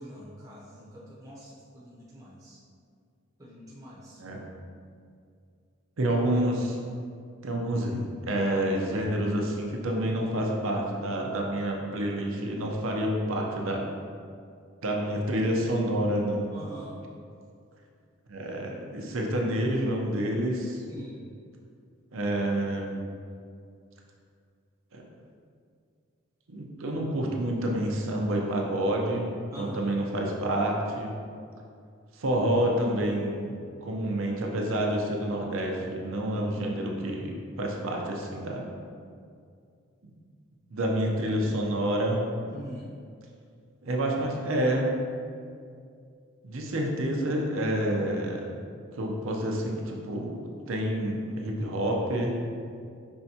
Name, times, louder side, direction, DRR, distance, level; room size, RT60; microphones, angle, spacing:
voice 1, 0.0-2.6 3.4-4.2 16.5-17.0 20.9-21.3 29.5-30.0 42.4-42.9, right 1 dB, 15° right, -7 dB, 0.7 m, -44 dB
voice 2, 6.0-6.8 7.4-13.9 14.8-16.5 18.3-20.8 22.1-23.1 24.9-25.0 26.5-31.1 32.2-33.6 33.8-38.6 40.0-40.1 40.7-42.3 43.8-45.0 46.4-48.5 48.9-50.4 50.7-52.4, right 1 dB, 70° right, 0 dB, 0.7 m, -28 dB
5.6 x 3.3 x 2.8 m, 2.3 s
head